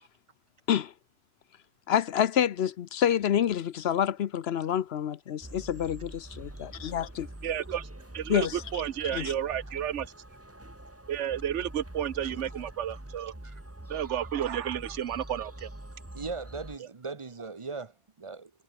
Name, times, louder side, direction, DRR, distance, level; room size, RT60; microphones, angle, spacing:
voice 1, 1.9-7.3 8.3-8.5 9.1-9.3, left 9 dB, 65° left, 0.9 m, -28 dB
sound 1, 5.4-16.8, right 1 dB, 10° right, 1.7 m, -45 dB
voice 2, 7.4-7.9 8.1-10.1 11.1-13.3 13.9-15.7 16.8-16.9, right 10 dB, 80° right, 1.1 m, -32 dB
voice 3, 16.1-18.5, right 4 dB, 30° right, 0.8 m, -39 dB
omnidirectional pair, 1.2 m